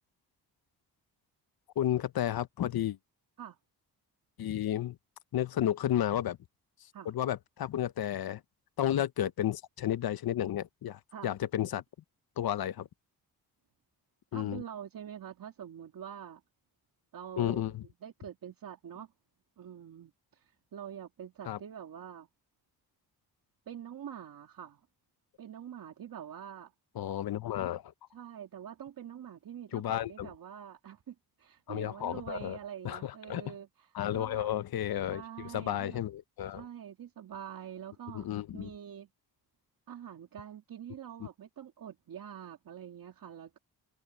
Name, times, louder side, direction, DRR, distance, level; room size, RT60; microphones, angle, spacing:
voice 1, 1.8-3.0 4.4-4.9 5.3-6.4 7.1-8.4 8.8-11.8 12.4-12.9 14.3-14.6 17.4-17.8 21.5-21.6 27.0-27.9 29.7-30.3 31.7-32.6 32.8-33.4 33.9-35.2 35.5-36.6 38.1-38.7, left 11 dB, 70° left, 1.0 m, -32 dB
voice 2, 14.3-16.4 17.1-19.1 19.6-22.3 23.7-24.8 25.4-26.7 28.1-34.5 35.1-36.0 36.5-39.1 39.9-43.6, right 9 dB, 65° right, 2.2 m, -45 dB
cardioid pair, 80°, 38 cm